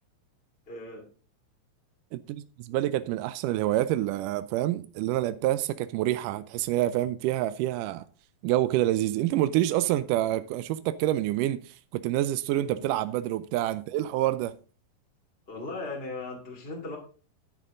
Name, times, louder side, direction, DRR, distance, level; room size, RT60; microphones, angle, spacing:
voice 1, 0.7-1.1 12.6-12.9 15.5-17.0, left 2 dB, 20° left, 2.2 m, -38 dB
voice 2, 2.1-8.1 8.4-11.6 11.9-14.5, right 14 dB, 80° right, 1.9 m, -27 dB
10.0 x 9.8 x 3.7 m
omnidirectional pair, 4.2 m